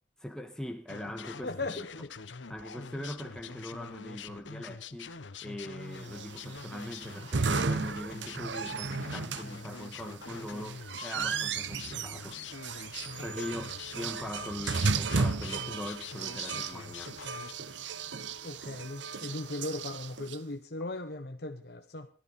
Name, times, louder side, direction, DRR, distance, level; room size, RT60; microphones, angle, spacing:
voice 1, 0.2-1.9 2.5-5.2 5.4-12.4 13.2-17.2, left 1 dB, 5° left, 1.6 m, -41 dB
sound 1, 0.9-17.5, left 5 dB, 85° left, 1.0 m, -45 dB
voice 2, 1.4-2.1 13.2-13.3 13.5-13.7 18.4-22.1, left 2 dB, 55° left, 1.1 m, -38 dB
sound 2, 6.1-20.4, right 4 dB, 80° right, 0.9 m, -35 dB
22.5 x 14.0 x 4.2 m
head